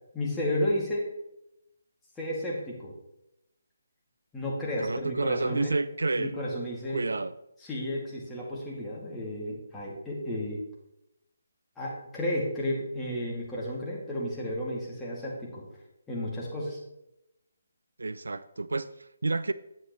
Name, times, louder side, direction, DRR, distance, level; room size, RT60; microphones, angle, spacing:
voice 1, 0.1-1.1 2.2-2.9 4.3-5.8 6.2-7.0 7.6-10.6 11.8-15.6 16.1-16.8, left 1 dB, 10° left, -5 dB, 2.1 m, -32 dB
voice 2, 4.8-6.3 6.9-7.3 18.0-19.5, right 3 dB, 70° right, 14 dB, 0.3 m, -30 dB
9.8 x 7.7 x 3.0 m, 0.87 s
figure-of-eight pair, 145°, 0 cm